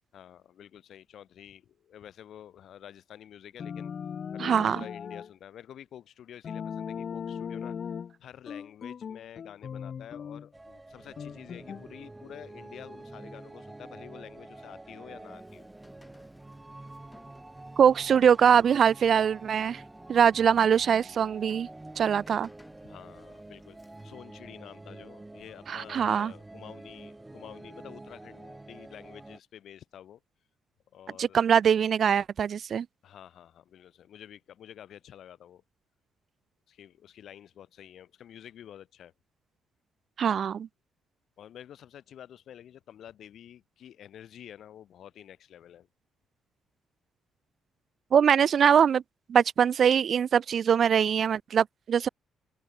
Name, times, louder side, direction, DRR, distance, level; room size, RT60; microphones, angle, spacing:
voice 1, 0.1-3.9 4.3-7.8 8.2-15.7 22.8-23.8 24.0-30.2 30.9-31.4 33.0-35.6 36.7-39.1 41.4-45.9, left 10 dB, 70° left, 3.7 m, -49 dB
sound 1, 3.6-5.3 6.4-8.1 8.5-10.5 11.2-11.9, left 7 dB, 50° left, 2.9 m, -38 dB
voice 2, 4.4-4.8 17.8-19.8 20.1-21.7 22.0-22.5 25.7-26.3 31.2-32.9 40.2-40.7 48.1-49.0 49.3-52.1, right 8 dB, 55° right, 0.5 m, -22 dB
sound 2, 10.5-29.4, right 2 dB, 15° right, 4.7 m, -47 dB
Rain, 15.0-24.3, left 2 dB, 15° left, 7.0 m, -59 dB
open air
cardioid pair, 90°, 0 cm